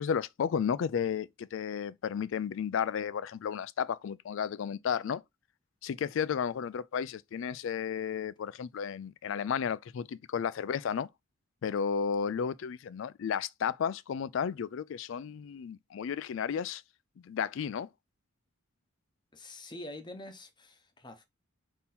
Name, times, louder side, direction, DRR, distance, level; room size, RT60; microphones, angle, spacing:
voice 1, 0.0-5.2 5.8-11.1 11.6-16.8 17.2-17.9, left 7 dB, 60° left, 0.3 m, -33 dB
voice 2, 19.3-21.2, left 1 dB, 20° left, 0.7 m, -45 dB
3.7 x 2.9 x 4.1 m
head